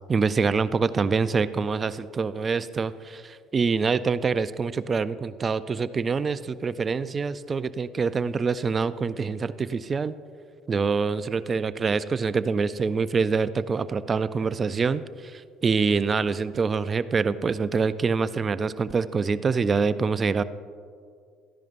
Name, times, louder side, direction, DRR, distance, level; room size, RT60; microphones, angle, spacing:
voice 1, 0.1-10.1 10.7-20.4, right 5 dB, 35° right, 15 dB, 0.4 m, -25 dB
13.5 x 10.5 x 2.6 m, 2.2 s
supercardioid pair, 75°, 0 cm